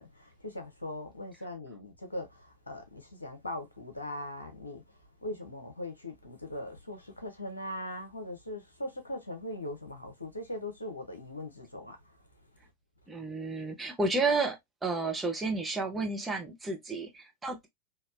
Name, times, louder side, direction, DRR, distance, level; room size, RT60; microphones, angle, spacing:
voice 1, 0.0-4.8 5.2-12.0, left 1 dB, 80° left, 0.9 m, -40 dB
voice 2, 13.1-14.6 14.8-17.7, right 3 dB, 10° right, 1.0 m, -31 dB
3.3 x 2.7 x 2.5 m
figure-of-eight pair, 90°, 0 cm